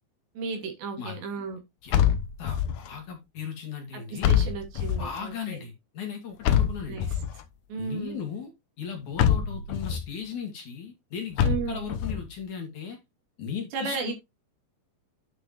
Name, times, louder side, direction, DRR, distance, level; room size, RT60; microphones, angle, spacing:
voice 1, 0.4-1.6 3.9-5.6 6.9-7.1 7.7-8.2 11.4-11.8 13.7-14.1, right 4 dB, 85° right, 4.8 m, -34 dB
sound 1, 1.9-2.9 4.2-5.2 6.4-7.4 9.2-10.0 11.4-12.2, left 9 dB, 75° left, 2.0 m, -25 dB
voice 2, 2.4-4.3 5.0-7.1 7.8-8.5 8.8-13.0 13.4-14.1, left 7 dB, 50° left, 3.4 m, -37 dB
10.5 x 6.7 x 3.0 m
omnidirectional pair, 4.9 m